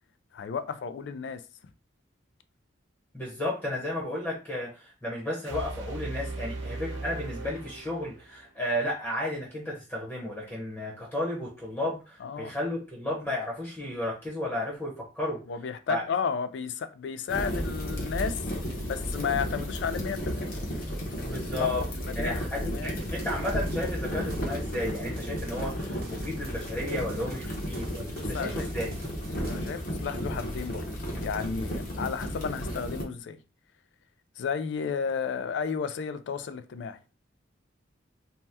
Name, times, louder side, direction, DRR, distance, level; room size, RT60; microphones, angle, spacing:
voice 1, 0.3-1.4 12.2-12.5 15.5-18.4 18.9-20.6 21.6-22.4 22.7-23.0 28.2-28.9 29.4-30.9 31.2-33.4 34.4-37.1, left 6 dB, 70° left, 0.3 m, -33 dB
voice 2, 3.1-15.4 15.9-16.0 21.2-21.8 22.2-28.9, left 1 dB, 10° left, 0.8 m, -33 dB
sound 1, 5.5-8.5, right 2 dB, 85° right, 0.9 m, -38 dB
sound 2, 17.3-33.0, equal, 50° left, 0.8 m, -33 dB
sound 3, 23.0-29.8, right 1 dB, 50° right, 0.5 m, -45 dB
2.7 x 2.1 x 3.4 m
head